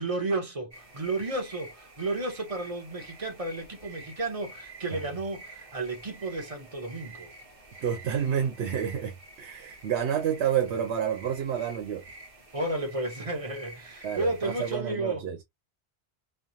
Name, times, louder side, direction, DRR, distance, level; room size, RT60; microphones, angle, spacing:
voice 1, 0.0-7.3 12.5-15.2, right 2 dB, 35° right, 0.9 m, -32 dB
sound 1, 0.7-14.8, right 2 dB, 55° right, 1.3 m, -49 dB
voice 2, 7.8-12.0 14.0-15.4, right 8 dB, 75° right, 0.9 m, -29 dB
3.3 x 2.0 x 2.7 m
omnidirectional pair, 1.1 m